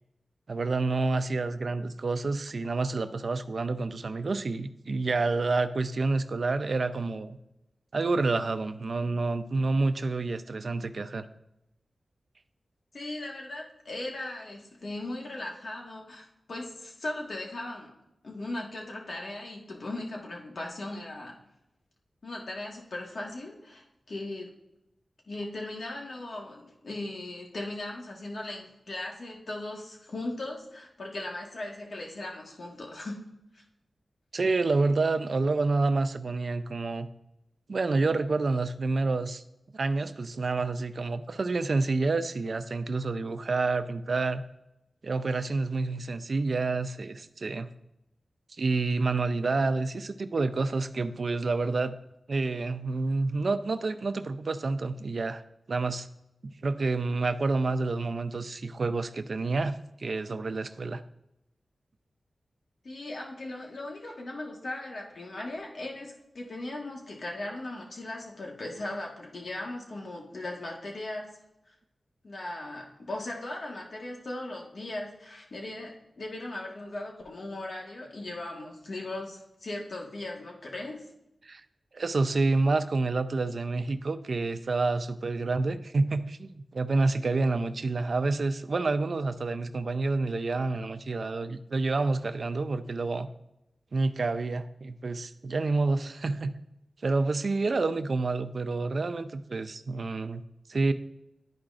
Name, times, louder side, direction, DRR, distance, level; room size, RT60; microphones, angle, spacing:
voice 1, 0.5-7.4 7.9-11.2 34.3-37.1 37.7-39.4 39.7-44.4 45.0-47.7 48.5-51.9 52.3-55.4 55.7-56.1 56.4-59.7 60.0-61.0 81.4-81.6 81.9-93.3 93.9-96.5 97.0-100.4 100.7-100.9, right 3 dB, 55° right, 11 dB, 0.4 m, -28 dB
voice 2, 12.9-17.9 18.2-21.3 22.2-24.5 25.3-33.2 33.5-33.6 62.8-71.3 71.7-71.8 72.2-81.0, left 2 dB, 65° left, -1 dB, 1.4 m, -38 dB
12.0 x 4.8 x 2.5 m, 0.88 s
wide cardioid pair, 105°, 0 cm